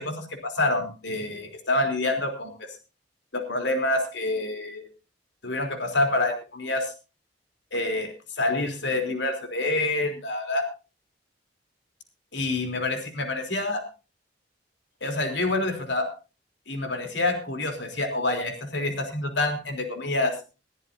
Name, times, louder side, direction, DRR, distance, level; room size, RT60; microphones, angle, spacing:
voice 1, 0.0-2.5 3.3-4.9 5.4-6.9 7.7-8.1 8.4-10.7 12.3-13.8 15.0-16.1 16.7-20.3, left 2 dB, 75° left, 5 dB, 3.5 m, -27 dB
20.0 x 14.0 x 2.7 m, 0.32 s
head